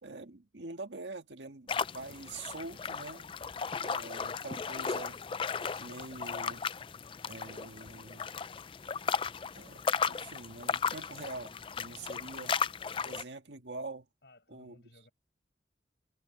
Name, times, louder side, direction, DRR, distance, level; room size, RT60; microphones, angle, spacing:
voice 1, 0.0-3.3 3.8-5.2 5.8-6.6 7.3-8.3 9.5-9.8 10.1-12.5 13.0-14.1 14.5-14.8, right 3 dB, 85° right, 1.7 m, -45 dB
sound 1, 1.7-13.2, left 6 dB, 30° left, 0.4 m, -35 dB
voice 2, 14.2-15.1, left 1 dB, 70° left, 7.5 m, -59 dB
head